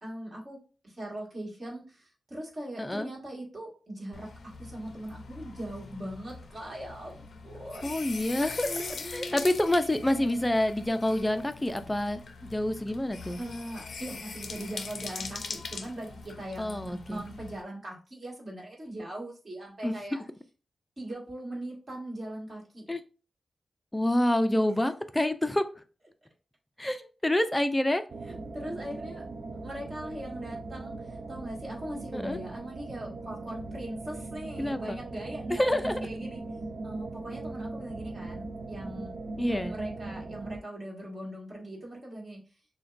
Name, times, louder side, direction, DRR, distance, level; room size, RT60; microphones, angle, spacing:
voice 1, 0.0-8.0 8.6-9.6 13.4-20.2 21.0-22.8 28.2-29.3 29.6-36.4 36.8-39.1 39.4-42.4, right 1 dB, 35° right, -3 dB, 1.6 m, -40 dB
voice 2, 2.8-3.1 7.8-8.7 9.1-13.4 16.6-17.2 19.8-20.0 22.9-23.0 23.9-25.6 26.8-28.0 32.1-32.4 34.6-35.0 35.5-36.0 39.4-39.8, left 1 dB, 10° left, 10 dB, 0.4 m, -27 dB
sound 1, 4.1-17.6, left 4 dB, 70° left, 0.4 m, -42 dB
sound 2, 28.1-40.6, right 3 dB, 70° right, 0.4 m, -39 dB
6.4 x 2.2 x 2.5 m, 0.36 s
wide cardioid pair, 125°, 0 cm